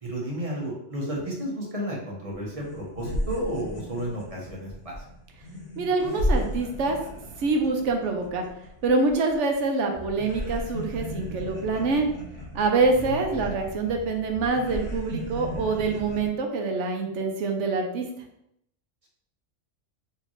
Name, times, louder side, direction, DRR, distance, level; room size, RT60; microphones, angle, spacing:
voice 1, 0.0-5.1 12.9-13.5, right 1 dB, 30° right, -3 dB, 0.9 m, -32 dB
sound 1, 2.3-2.4 2.6-9.6 9.9-16.3, equal, 75° left, 1.3 m, -34 dB
voice 2, 5.8-7.0 7.4-8.4 8.8-12.1 12.5-18.1, right 3 dB, 70° right, 3 dB, 1.0 m, -25 dB
4.3 x 2.8 x 3.0 m, 0.78 s
omnidirectional pair, 1.3 m